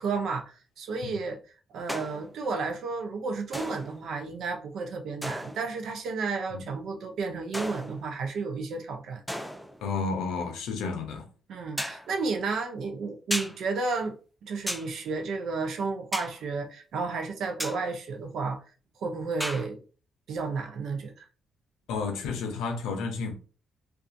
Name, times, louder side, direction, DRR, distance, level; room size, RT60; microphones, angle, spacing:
voice 1, 0.0-1.4 1.7-9.2 11.5-14.2 14.4-18.6 19.0-19.8 20.3-21.3, right 4 dB, 70° right, 0.5 m, -32 dB
sound 1, 1.9-2.4 3.5-4.1 5.2-5.8 7.5-8.3 9.3-9.8 11.8-12.1 13.3-13.6 14.7-14.9 16.1-16.4 17.6-17.8 19.4-19.7, equal, ahead, 0.3 m, -35 dB
voice 2, 9.8-11.3 21.9-23.3, left 4 dB, 90° left, 0.5 m, -31 dB
2.4 x 2.3 x 2.5 m
cardioid pair, 90°, 0 cm